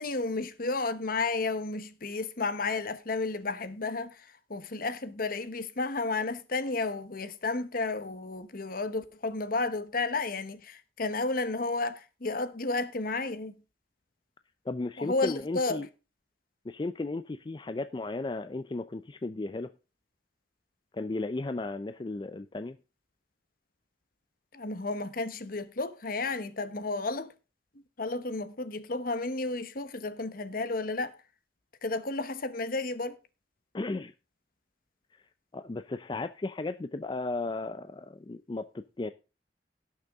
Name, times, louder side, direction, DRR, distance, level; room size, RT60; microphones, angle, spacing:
voice 1, 0.0-13.6 15.0-15.8 24.5-27.3 28.0-31.2 31.8-33.2, left 3 dB, 55° left, 1.0 m, -32 dB
voice 2, 14.7-15.9 16.7-19.7 20.9-22.8 33.7-34.1 35.5-39.1, left 2 dB, 25° left, 0.4 m, -35 dB
17.0 x 6.6 x 3.6 m
head